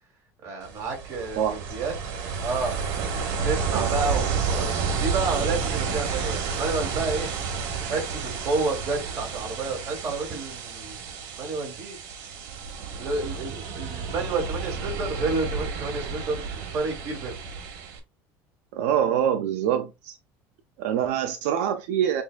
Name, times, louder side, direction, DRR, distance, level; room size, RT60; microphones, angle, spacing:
voice 1, 0.4-1.4 1.7-1.9 2.4-2.8 3.4-4.7 5.0-7.3 7.8-12.0 13.0-17.4, right 3 dB, 40° right, 2.5 m, -30 dB
Ocean, 0.6-18.0, right 5 dB, 65° right, 1.5 m, -30 dB
voice 2, 18.7-20.2 20.8-22.2, right 9 dB, 85° right, 0.5 m, -25 dB
6.9 x 2.5 x 2.4 m
cardioid pair, 150°, 8 cm